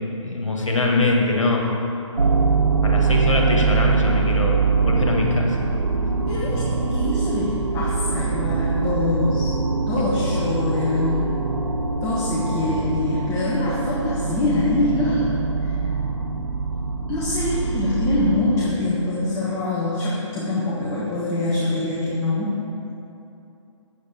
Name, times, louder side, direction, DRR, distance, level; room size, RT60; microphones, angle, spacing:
voice 1, 0.0-1.7 2.8-5.6, left 2 dB, 80° left, 0 dB, 2.0 m, -23 dB
sound 1, 2.2-18.7, right 4 dB, 85° right, 1.0 m, -23 dB
voice 2, 6.3-9.5 9.9-11.4 12.0-15.3 15.6-15.7 17.1-22.6, left 2 dB, 20° left, -6 dB, 1.4 m, -24 dB
13.5 x 9.1 x 3.6 m, 2.8 s
figure-of-eight pair, 135°, 16 cm